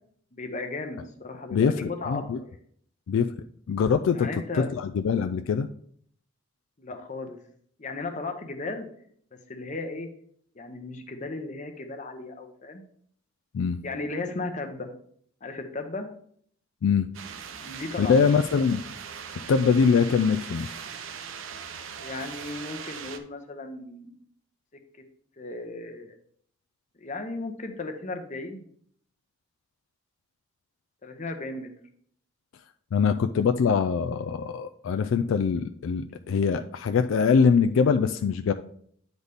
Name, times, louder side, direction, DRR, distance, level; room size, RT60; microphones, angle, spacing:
voice 1, 0.3-2.2 4.1-4.7 6.8-7.4 7.8-8.9 9.3-10.1 10.5-12.8 13.8-14.9 15.4-16.1 17.6-18.1 22.0-24.2 25.4-26.2 27.0-28.6 31.0-31.7, left 3 dB, 35° left, 5 dB, 0.8 m, -35 dB
voice 2, 1.5-2.4 3.1-3.3 3.7-4.3 4.5-5.7 13.5-13.8 16.8-17.1 18.0-18.8 19.5-20.7 32.9-38.5, left 6 dB, 75° left, 7 dB, 0.3 m, -23 dB
sound 1, 17.1-23.2, right 7 dB, 80° right, 0.7 m, -40 dB
9.6 x 4.0 x 3.4 m, 0.62 s
head